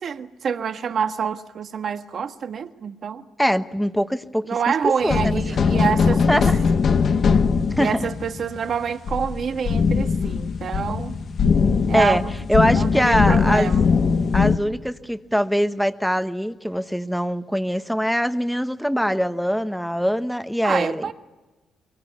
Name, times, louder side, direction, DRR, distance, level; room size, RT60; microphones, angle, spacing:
voice 1, 0.0-3.2 4.5-6.5 7.8-11.2 11.9-12.3 12.7-13.8 20.6-21.1, right 7 dB, 55° right, 1.4 m, -27 dB
voice 2, 3.4-4.5 4.8-5.4 5.7-5.8 6.3-6.5 7.8-8.1 11.9-12.2 12.5-13.7 14.3-21.1, equal, ahead, 1.2 m, -22 dB
sound 1, 5.1-14.6, left 5 dB, 50° left, 1.1 m, -20 dB
23.5 x 23.0 x 8.2 m
cardioid pair, 90°, 0 cm